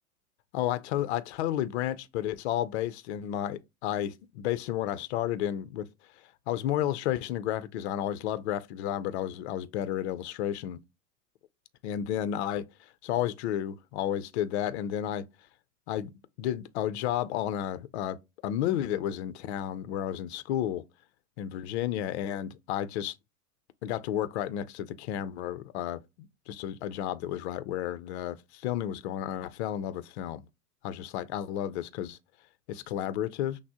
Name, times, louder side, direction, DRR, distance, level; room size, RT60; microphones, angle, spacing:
voice 1, 0.5-5.9 6.5-10.8 11.8-15.3 15.9-16.1 16.4-18.2 18.4-20.8 21.4-23.2 23.8-30.4 30.8-32.2 32.7-33.6, left 11 dB, 45° left, 0.5 m, -32 dB
5.9 x 2.1 x 3.5 m
hypercardioid pair, 105°, 47 cm